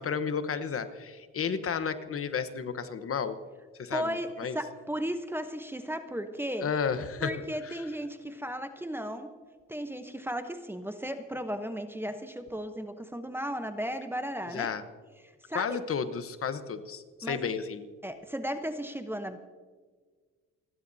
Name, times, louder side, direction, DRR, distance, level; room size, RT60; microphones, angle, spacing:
voice 1, 0.0-3.4 3.8-4.6 6.6-7.4 7.6-7.8 14.5-14.8 15.5-17.9, left 6 dB, 50° left, 10 dB, 1.0 m, -32 dB
voice 2, 3.9-6.7 7.2-9.3 9.7-14.7 15.5-15.8 17.2-17.5 18.0-19.4, equal, 5° right, 8 dB, 0.9 m, -35 dB
29.0 x 11.5 x 2.7 m, 1.5 s
cardioid pair, 90°, 30 cm